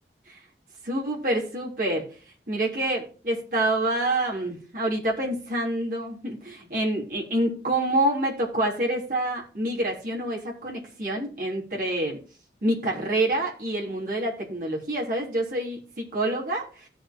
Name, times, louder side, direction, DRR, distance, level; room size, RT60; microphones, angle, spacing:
voice 1, 0.8-2.1 2.5-12.2 12.6-16.8, right 1 dB, 50° right, -3 dB, 3.6 m, -27 dB
17.0 x 6.4 x 3.0 m, 0.38 s
head